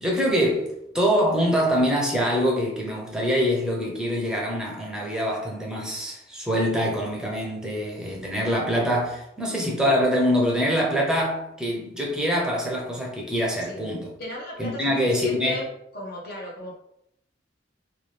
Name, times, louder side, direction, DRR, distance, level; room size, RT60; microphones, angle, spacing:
voice 1, 0.0-14.1 14.6-15.6, equal, 5° right, 0.7 m, -24 dB
voice 2, 13.6-13.9 14.2-15.7 15.9-16.8, equal, 55° left, 0.9 m, -36 dB
3.1 x 2.3 x 3.2 m
head